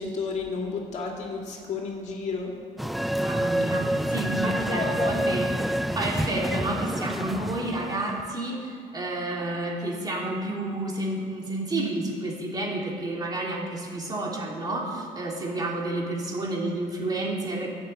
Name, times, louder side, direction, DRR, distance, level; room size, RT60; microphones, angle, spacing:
voice 1, 0.0-2.6 4.7-5.2, left 4 dB, 55° left, 0 dB, 2.4 m, -32 dB
sound 1, 2.8-8.3, equal, ahead, 0.3 m, -28 dB
voice 2, 3.2-17.7, right 2 dB, 30° right, -2 dB, 3.0 m, -30 dB
11.5 x 7.4 x 8.8 m, 2.5 s
cardioid pair, 105°, 14 cm